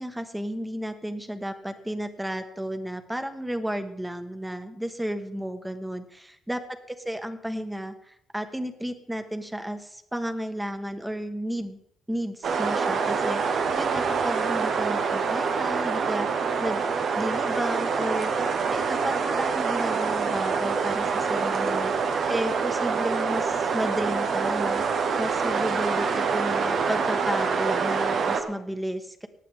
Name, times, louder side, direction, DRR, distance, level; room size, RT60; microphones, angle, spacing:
voice 1, 0.0-6.6 6.9-11.8 12.1-13.4 13.8-16.8 17.1-29.3, equal, 5° right, 8 dB, 1.3 m, -33 dB
sound 1, 12.4-28.4, right 5 dB, 60° right, 1.4 m, -26 dB
19.5 x 8.4 x 3.6 m, 0.75 s
cardioid pair, 90°, 0 cm